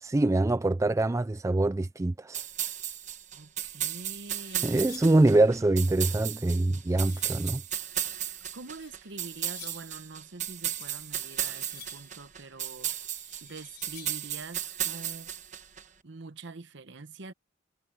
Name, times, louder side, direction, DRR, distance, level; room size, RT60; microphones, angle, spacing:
voice 1, 0.0-2.4 4.6-7.6, right 2 dB, 15° right, 0.3 m, -24 dB
sound 1, 2.3-15.8, right 11 dB, 35° right, 1.4 m, -35 dB
voice 2, 3.3-4.8 8.3-12.9 13.4-15.3 16.0-17.3, right 3 dB, 60° right, 1.0 m, -45 dB
sound 2, 3.9-5.3 6.1-7.5 8.5-10.0 10.8-12.2 12.9-14.4, left 13 dB, 55° left, 5.1 m, -52 dB
head